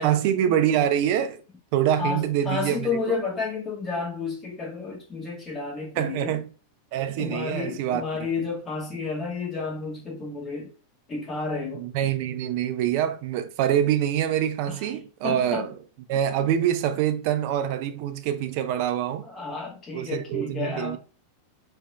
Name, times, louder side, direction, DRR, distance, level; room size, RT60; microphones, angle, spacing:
voice 1, 0.0-1.4 1.7-2.9 6.0-6.5 6.9-8.0 11.7-15.7 16.1-19.3 19.9-21.0, right 10 dB, 45° right, 0.3 m, -25 dB
voice 2, 2.0-6.4 7.2-10.7 11.1-12.2 14.7-14.9 15.2-15.7 19.2-21.0, left 4 dB, 20° left, 1.2 m, -31 dB
3.4 x 2.5 x 2.2 m
figure-of-eight pair, 90°, 0 cm